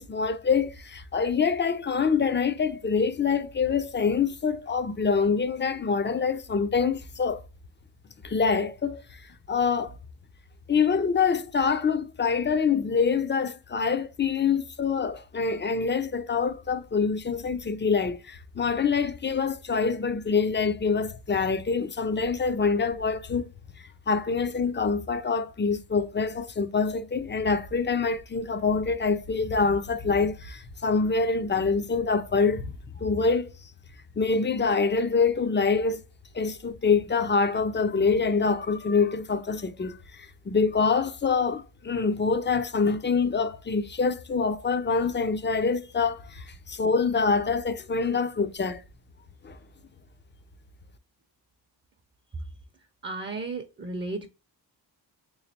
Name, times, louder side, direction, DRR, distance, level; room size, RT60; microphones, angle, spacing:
voice 1, 0.0-7.4 8.2-9.2 9.5-10.0 10.7-23.5 24.1-32.7 33.0-33.5 34.2-36.0 36.3-48.8 49.4-49.6, left 5 dB, 25° left, 0.5 m, -25 dB
voice 2, 53.0-54.3, right 3 dB, 25° right, 0.6 m, -34 dB
3.5 x 3.1 x 2.8 m
cardioid pair, 65°, 44 cm